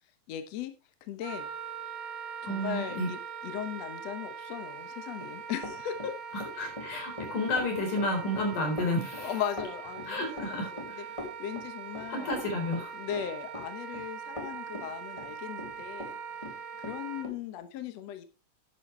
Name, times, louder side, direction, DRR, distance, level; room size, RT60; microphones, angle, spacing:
voice 1, 0.3-0.7 1.0-1.5 2.5-6.1 9.2-10.8 11.1-12.4 12.9-16.2 16.8-18.3, left 10 dB, 65° left, 8 dB, 2.0 m, -38 dB
Wind instrument woodwind instrument, 1.2-17.3, right 6 dB, 55° right, 1.7 m, -42 dB
voice 2, 2.5-3.1 6.3-9.3 10.1-11.1 12.1-13.0, left 1 dB, 80° left, 3 dB, 5.6 m, -31 dB
Run, 5.0-16.2 16.4-17.4, left 2 dB, 10° left, 2.0 m, -42 dB
11.0 x 11.0 x 3.2 m, 0.29 s
omnidirectional pair, 3.6 m